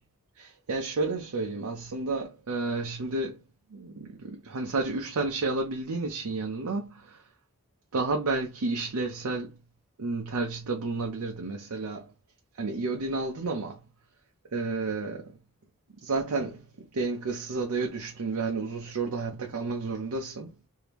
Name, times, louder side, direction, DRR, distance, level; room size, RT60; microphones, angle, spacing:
voice 1, 0.4-3.4 3.7-7.2 7.9-9.6 10.0-12.1 12.6-13.8 14.5-15.3 16.0-20.5, right 3 dB, 90° right, 0.6 m, -31 dB
3.4 x 2.7 x 2.9 m
head